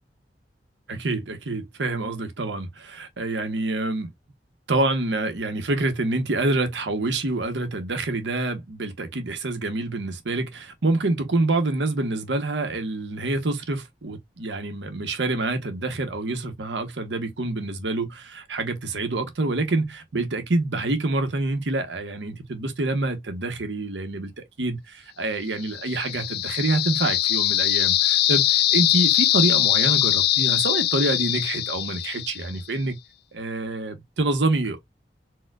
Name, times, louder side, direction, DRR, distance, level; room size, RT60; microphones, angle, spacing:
voice 1, 0.9-4.1 4.7-33.0 33.3-34.8, right 2 dB, 90° right, 0.9 m, -27 dB
sound 1, 25.6-32.6, left 13 dB, 60° left, 0.3 m, -22 dB
4.3 x 2.2 x 2.2 m
head